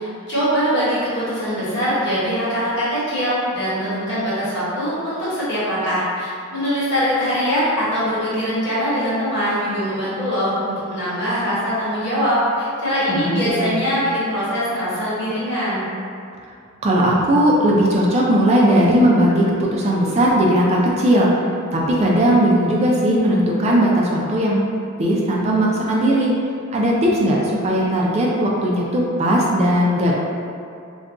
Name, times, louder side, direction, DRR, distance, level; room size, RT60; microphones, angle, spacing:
voice 1, 0.0-15.9, equal, 55° left, -10 dB, 1.2 m, -22 dB
voice 2, 13.1-13.8 16.8-21.3 21.7-24.7 25.0-26.3 26.7-30.1, equal, 30° right, -4 dB, 0.3 m, -17 dB
2.4 x 2.2 x 3.6 m, 2.5 s
head